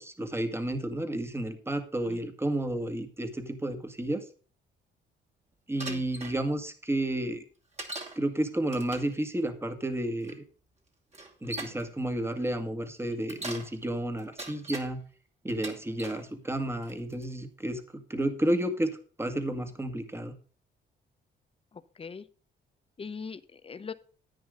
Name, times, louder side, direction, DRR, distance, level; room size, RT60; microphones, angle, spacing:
voice 1, 0.0-4.2 5.7-7.4 8.2-10.4 11.4-15.0 15.4-20.4, right 1 dB, 10° right, 8 dB, 1.9 m, -31 dB
Bicycle, 5.8-6.3 7.8-8.2 8.7-9.1 10.2-10.3 11.1-11.8 13.1-13.7 14.2-14.9 15.5-16.2 16.8-17.2, right 2 dB, 35° right, 2.6 m, -40 dB
voice 2, 21.7-22.3 23.0-23.9, left 5 dB, 30° left, 13 dB, 0.9 m, -41 dB
10.5 x 9.5 x 3.8 m, 0.40 s
cardioid pair, 90°, 20 cm